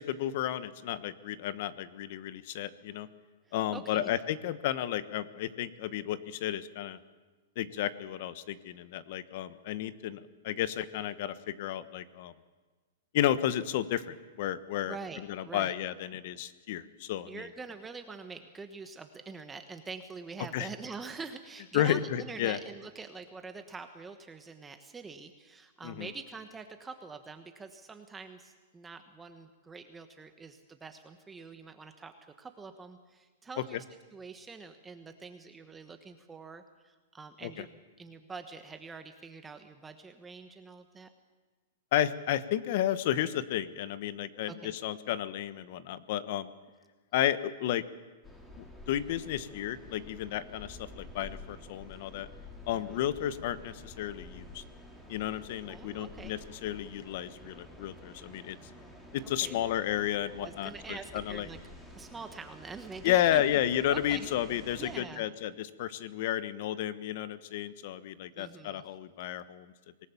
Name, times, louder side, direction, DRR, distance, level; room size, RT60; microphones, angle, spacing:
voice 1, 0.0-3.1 3.5-7.0 7.6-12.3 13.1-15.0 15.3-17.4 20.5-20.7 21.7-22.6 25.8-26.1 33.7-33.8 37.4-37.5 41.9-46.5 47.1-47.8 48.6-52.3 52.6-54.6 55.1-58.6 59.1-61.5 63.0-69.7, left 11 dB, 55° left, 14 dB, 1.2 m, -32 dB
voice 2, 3.5-4.1 14.9-15.7 17.3-33.8 34.1-41.1 44.4-44.7 52.7-53.0 55.7-56.4 59.2-59.6 60.4-61.6 61.9-63.6 63.9-64.3 64.8-65.2 68.3-68.8, right 4 dB, 10° right, 7 dB, 1.1 m, -45 dB
sound 1, 48.2-65.0, left 1 dB, 10° left, 3.5 m, -50 dB
25.5 x 18.5 x 7.1 m, 1.3 s
hypercardioid pair, 150°, 0 cm